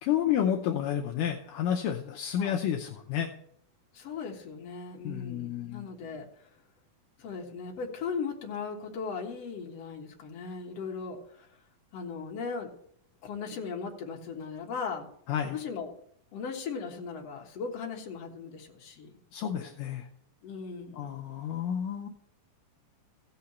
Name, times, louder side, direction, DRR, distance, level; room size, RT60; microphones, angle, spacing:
voice 1, 0.0-3.3 5.0-5.8 15.3-15.6 19.3-20.1 20.9-22.1, left 9 dB, 80° left, 1 dB, 2.1 m, -30 dB
voice 2, 3.9-6.3 7.2-11.5 11.9-12.7 13.2-15.1 15.5-15.9 16.3-19.2 20.4-21.1, left 5 dB, 55° left, 0 dB, 2.2 m, -38 dB
16.0 x 5.8 x 4.2 m, 0.67 s
omnidirectional pair, 4.1 m